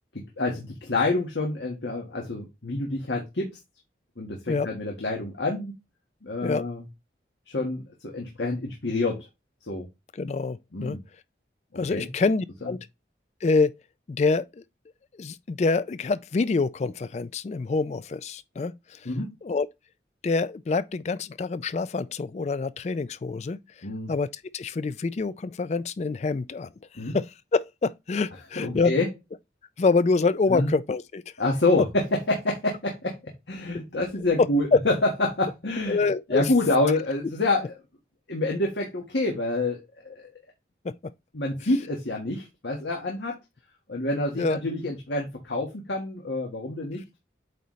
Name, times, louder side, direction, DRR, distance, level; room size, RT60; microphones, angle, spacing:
voice 1, 0.4-3.5 4.2-5.7 6.2-6.8 7.5-9.2 9.7-9.9 10.7-11.0 11.9-12.1 19.0-19.3 23.8-24.1 26.9-27.2 28.6-29.1 30.5-30.7 31.4-34.9 35.3-36.0 36.3-37.7 38.3-39.8 40.0-40.3 41.3-43.3 43.9-47.2, left 2 dB, 80° left, 1.5 m, -27 dB
voice 2, 10.1-11.0 11.8-12.9 13.4-13.8 14.1-14.6 15.2-19.1 19.4-19.7 20.2-24.3 24.5-28.9 29.8-31.2 34.4-34.8 35.9-36.5 40.8-40.9 44.4-44.6, left 4 dB, 40° left, 0.3 m, -26 dB
8.3 x 4.1 x 3.1 m
head